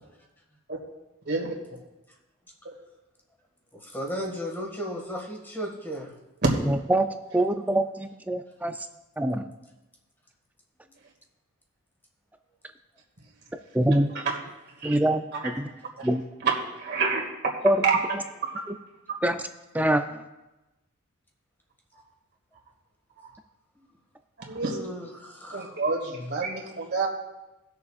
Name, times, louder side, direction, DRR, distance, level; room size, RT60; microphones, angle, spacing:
voice 1, 3.7-6.1 24.7-25.8, equal, 10° left, -1 dB, 1.8 m, -35 dB
voice 2, 6.7-7.1 7.3-8.7 9.2-9.4 13.7-14.1 14.8-15.6 16.0-16.2 17.6-17.8 19.2-19.4 19.7-20.0, right 1 dB, 5° right, 8 dB, 0.4 m, -24 dB
voice 3, 13.8-14.4 14.8-15.0 15.3-15.6 16.4-18.6 24.5-24.8 25.5-27.1, right 4 dB, 50° right, -1 dB, 2.1 m, -28 dB
19.5 x 6.9 x 2.4 m, 1.0 s
head